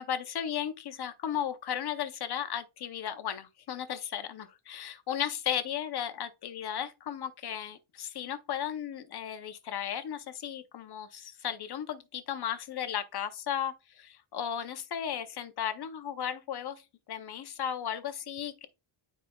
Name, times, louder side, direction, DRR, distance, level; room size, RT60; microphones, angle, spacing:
voice 1, 0.0-18.7, left 9 dB, 50° left, 0.7 m, -35 dB
9.2 x 5.0 x 2.2 m
wide cardioid pair, 175°, 49 cm